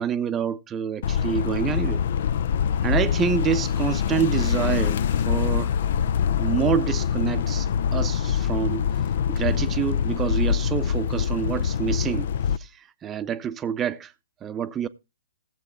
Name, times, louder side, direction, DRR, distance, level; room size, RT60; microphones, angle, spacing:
voice 1, 0.0-2.0 2.8-5.7 6.4-7.7 7.9-8.9 9.3-12.3 12.6-12.7 13.0-14.1 14.4-14.9, right 8 dB, 20° right, 0.7 m, -27 dB
sound 1, 1.0-12.6, left 8 dB, 60° left, 0.5 m, -24 dB
16.5 x 7.5 x 3.5 m
hypercardioid pair, 140°, 0 cm